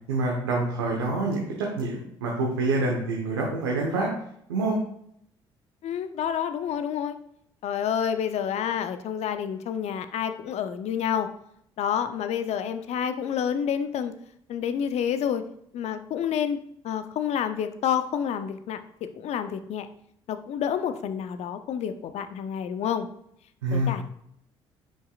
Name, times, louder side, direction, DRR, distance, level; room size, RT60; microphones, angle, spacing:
voice 1, 0.1-4.1 4.5-4.8 23.6-24.0, right 2 dB, 85° right, -2 dB, 1.1 m, -26 dB
voice 2, 5.8-7.1 7.6-11.3 11.8-14.1 14.5-15.4 15.7-16.6 16.8-19.9 20.3-23.1 23.7-24.0, left 8 dB, 55° left, 10 dB, 0.7 m, -29 dB
8.9 x 5.6 x 2.5 m, 0.71 s
hypercardioid pair, 50°, 13 cm